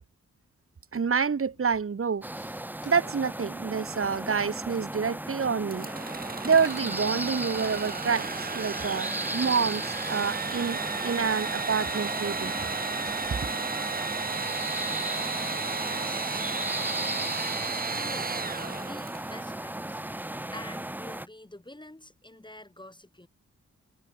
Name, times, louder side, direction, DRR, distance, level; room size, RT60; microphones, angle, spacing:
voice 1, 0.9-2.2 2.8-5.9 6.4-12.5, right 6 dB, 45° right, 1.4 m, -28 dB
sound 1, 1.5-18.4, left 7 dB, 85° left, 5.9 m, -61 dB
sound 2, 2.2-21.3, right 1 dB, 5° right, 0.6 m, -36 dB
Engine / Sawing, 5.7-19.4, right 4 dB, 30° right, 1.0 m, -33 dB
voice 2, 15.8-17.3 17.6-20.0 20.5-23.3, left 1 dB, 15° left, 6.6 m, -48 dB
cardioid pair, 55°, 30 cm